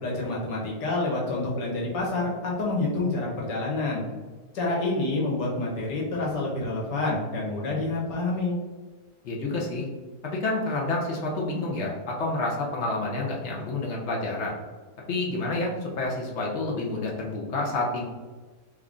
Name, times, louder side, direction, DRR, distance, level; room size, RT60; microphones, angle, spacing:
voice 1, 0.0-4.0 4.5-8.6, left 2 dB, 85° left, -3 dB, 1.5 m, -28 dB
voice 2, 9.2-9.9 10.2-14.5 15.1-18.0, left 2 dB, 65° left, -2 dB, 0.7 m, -29 dB
3.2 x 2.4 x 3.5 m, 1.3 s
omnidirectional pair, 1.8 m